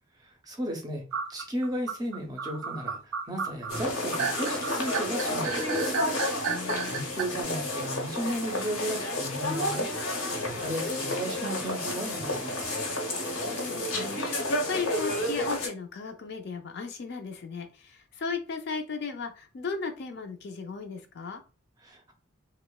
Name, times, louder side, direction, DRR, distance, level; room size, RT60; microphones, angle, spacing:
voice 1, 0.2-6.0 6.9-12.8 21.8-22.1, right 1 dB, 20° right, 3 dB, 0.5 m, -35 dB
sound 1, 1.1-7.2, right 6 dB, 90° right, 0.4 m, -33 dB
sound 2, 3.7-15.7, left 1 dB, 85° left, 0.8 m, -31 dB
voice 2, 6.4-6.9 13.4-21.4, left 4 dB, 55° left, 5 dB, 0.4 m, -36 dB
2.8 x 2.0 x 2.2 m, 0.35 s
head